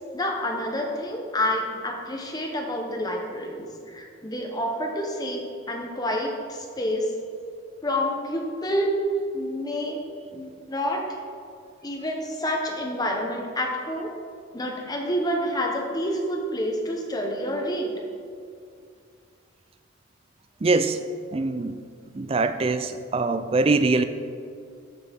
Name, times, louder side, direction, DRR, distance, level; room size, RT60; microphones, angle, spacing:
voice 1, 0.1-7.1 7.8-9.0 9.3-10.0 10.3-11.2 11.8-14.1 14.5-17.9, equal, 20° left, 1 dB, 1.0 m, -28 dB
voice 2, 20.6-21.0 21.3-21.8 22.2-24.0, right 3 dB, 30° right, 10 dB, 0.4 m, -23 dB
13.5 x 6.5 x 3.6 m, 2.3 s
head